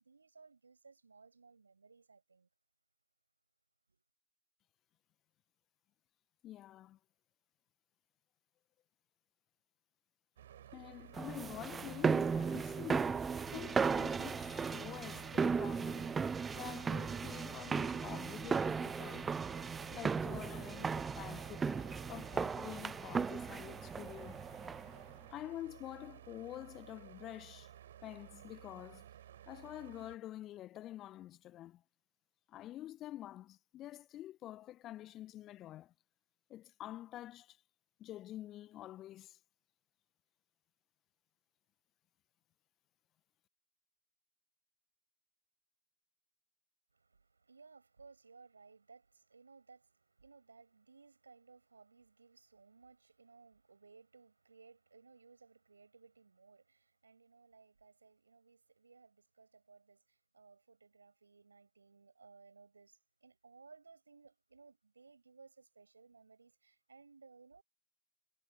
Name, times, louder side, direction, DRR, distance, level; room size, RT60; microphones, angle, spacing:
voice 1, 0.0-2.5 3.9-4.0 46.9-67.6, right 4 dB, 80° right, 7.2 m, -61 dB
voice 2, 6.4-7.0 10.7-16.2 16.5-19.5 19.9-24.4 25.3-27.7 28.0-29.1 29.5-31.8 32.5-35.9 36.5-37.6 38.0-39.4, left 13 dB, 35° left, 1.6 m, -48 dB
sound 1, 10.4-30.2, right 10 dB, 65° right, 5.5 m, -55 dB
sound 2, 11.1-25.0, right 5 dB, 15° right, 0.3 m, -36 dB
figure-of-eight pair, 90°, 0 cm